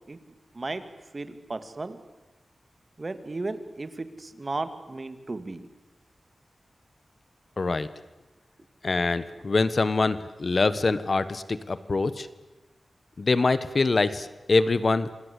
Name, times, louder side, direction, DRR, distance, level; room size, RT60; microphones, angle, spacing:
voice 1, 1.1-2.0 3.0-5.7, right 2 dB, 35° right, 10 dB, 2.0 m, -35 dB
voice 2, 7.6-7.9 8.8-12.3 13.2-15.1, left 3 dB, 45° left, 14 dB, 1.2 m, -24 dB
28.0 x 25.0 x 8.3 m, 1.1 s
wide cardioid pair, 120°, 0 cm